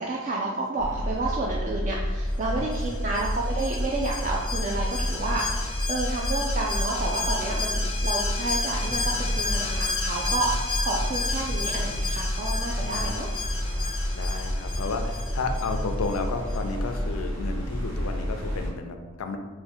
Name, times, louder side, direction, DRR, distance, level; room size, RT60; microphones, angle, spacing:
voice 1, 0.0-13.3, right 3 dB, 35° right, -2 dB, 0.3 m, -30 dB
sound 1, 0.8-18.7, equal, 70° right, 1.1 m, -30 dB
Alarm, 2.7-16.2 16.5-16.6, left 4 dB, 25° left, 0.5 m, -33 dB
voice 2, 12.8-13.2 14.1-19.4, left 3 dB, 85° left, 5 dB, 0.4 m, -32 dB
3.5 x 2.2 x 4.3 m, 1.4 s
head